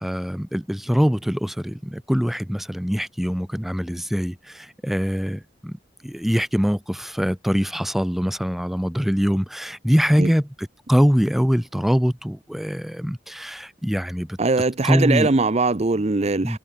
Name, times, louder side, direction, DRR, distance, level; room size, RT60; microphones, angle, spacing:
voice 1, 0.0-5.8 6.0-14.4 14.8-15.3 16.4-16.6, equal, ahead, 0.4 m, -23 dB
voice 2, 14.4-16.6, right 3 dB, 35° right, 0.7 m, -21 dB
head